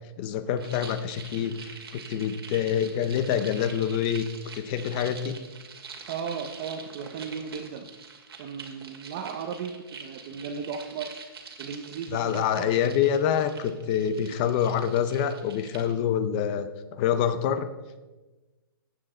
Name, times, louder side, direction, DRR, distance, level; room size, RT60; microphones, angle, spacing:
voice 1, 0.2-4.2 4.5-5.4 12.1-17.7, left 8 dB, 20° left, 12 dB, 0.6 m, -26 dB
sound 1, 0.6-15.9, right 5 dB, 85° right, 2.3 m, -45 dB
voice 2, 6.1-7.9 8.4-11.1 11.6-12.7, right 6 dB, 25° right, 5 dB, 0.6 m, -36 dB
14.5 x 9.0 x 4.3 m, 1.2 s
hypercardioid pair, 170°, 13 cm